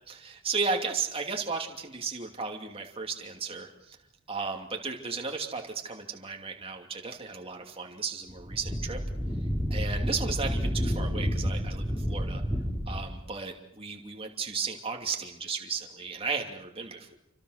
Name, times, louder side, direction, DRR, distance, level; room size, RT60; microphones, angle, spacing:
voice 1, 0.1-4.0 4.3-9.0 9.7-12.4 12.9-17.1, right 4 dB, 25° right, 2 dB, 2.7 m, -34 dB
Wind, 8.3-13.1, equal, 10° left, 4.6 m, -30 dB
29.5 x 25.0 x 6.6 m, 0.79 s
head